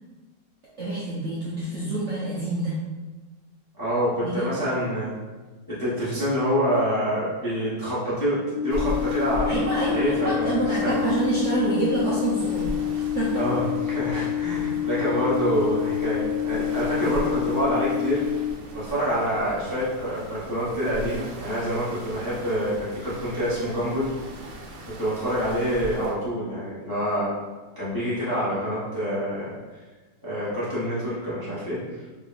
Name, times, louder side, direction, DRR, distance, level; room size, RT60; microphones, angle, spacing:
voice 1, 0.8-2.8 4.2-4.5 9.5-13.4, right 2 dB, 60° right, -9 dB, 0.8 m, -27 dB
voice 2, 3.7-5.2 5.7-11.0 13.3-18.2 18.7-24.1 25.0-27.3 27.8-29.5 30.2-31.8, equal, 20° left, -10 dB, 0.7 m, -26 dB
sound 1, 8.5-18.5, left 11 dB, 70° left, 1.1 m, -28 dB
sound 2, 8.7-26.1, equal, 75° right, 1.2 m, -39 dB
3.6 x 3.2 x 2.5 m, 1.2 s
omnidirectional pair, 2.0 m